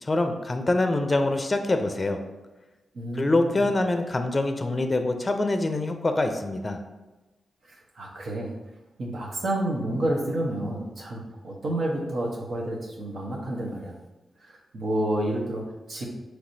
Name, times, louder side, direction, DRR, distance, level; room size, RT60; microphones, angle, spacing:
voice 1, 0.0-2.2 3.1-6.8, left 2 dB, 30° left, 6 dB, 0.5 m, -25 dB
voice 2, 2.9-3.6 7.7-8.5 9.0-13.9 14.4-16.1, right 1 dB, 65° right, -2 dB, 1.0 m, -30 dB
4.7 x 3.2 x 2.7 m, 1.1 s
cardioid pair, 65°, 0 cm